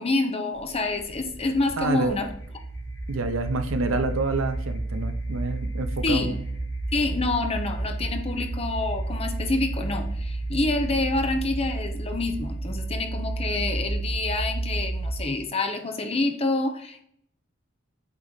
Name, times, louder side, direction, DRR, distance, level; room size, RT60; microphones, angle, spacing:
voice 1, 0.0-2.3 6.0-6.4 6.9-17.0, left 2 dB, 30° left, 5 dB, 0.8 m, -27 dB
sound 1, 0.6-15.5, right 2 dB, 55° left, 1.6 m, -31 dB
voice 2, 1.8-2.2 3.1-6.5, right 3 dB, 90° right, 8 dB, 0.7 m, -28 dB
8.3 x 3.1 x 4.0 m, 0.69 s
head